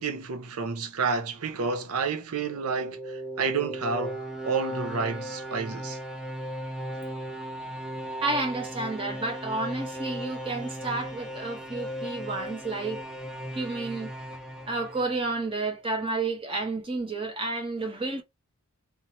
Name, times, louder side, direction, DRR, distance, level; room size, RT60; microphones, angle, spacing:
voice 1, 0.0-6.0, right 5 dB, 80° right, 0.7 m, -30 dB
sound 1, 2.4-15.5, equal, ahead, 0.5 m, -37 dB
voice 2, 8.2-13.0 13.5-14.1 14.7-18.2, right 3 dB, 25° right, 0.9 m, -31 dB
2.7 x 2.5 x 2.8 m
head